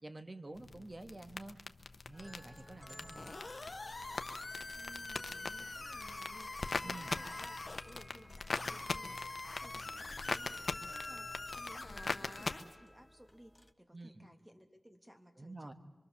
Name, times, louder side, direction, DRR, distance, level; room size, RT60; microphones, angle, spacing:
voice 1, 0.0-1.6 2.0-3.3 6.8-7.1 13.9-14.2 15.4-15.7, right 2 dB, 35° right, 7 dB, 2.0 m, -48 dB
sound 1, 0.6-12.5, left 4 dB, 70° left, 1.0 m, -42 dB
sound 2, 2.1-13.7, left 1 dB, 5° left, 1.1 m, -55 dB
sound 3, 3.2-7.8 8.6-12.8, left 3 dB, 50° left, 1.2 m, -45 dB
voice 2, 4.7-15.7, equal, 15° right, 4 dB, 3.0 m, -59 dB
25.0 x 24.5 x 7.0 m, 1.1 s
wide cardioid pair, 65°, 0 cm